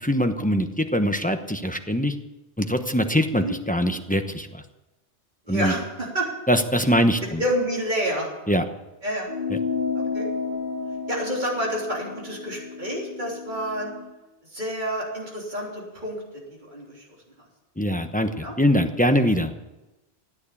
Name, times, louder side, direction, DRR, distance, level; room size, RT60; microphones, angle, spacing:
voice 1, 0.0-2.1 2.6-4.6 5.5-5.7 6.5-7.4 8.5-8.6 9.5-9.6 17.8-19.5, equal, 10° left, 6 dB, 0.8 m, -22 dB
voice 2, 5.5-6.3 7.4-8.3 9.0-9.3 10.0-10.3 11.1-13.9 14.5-16.2 16.5-17.1 18.4-18.5, equal, 40° right, -2 dB, 3.6 m, -28 dB
sound 1, 9.3-14.1, left 5 dB, 45° left, 1.0 m, -31 dB
15.0 x 9.4 x 8.5 m, 1.0 s
omnidirectional pair, 1.2 m